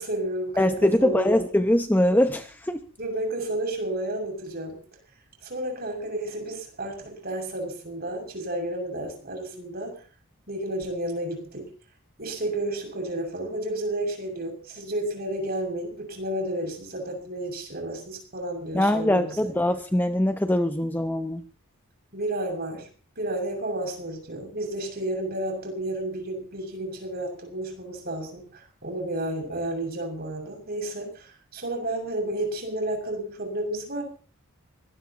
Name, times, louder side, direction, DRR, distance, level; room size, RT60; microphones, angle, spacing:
voice 1, 0.0-1.4 3.0-4.8 5.4-10.0 10.5-11.7 12.2-19.5 22.1-22.9 23.2-34.0, right 1 dB, 45° right, 2 dB, 6.4 m, -31 dB
voice 2, 0.6-2.8 18.7-21.4, left 1 dB, 10° left, 8 dB, 0.7 m, -22 dB
23.5 x 18.5 x 2.9 m, 0.40 s
head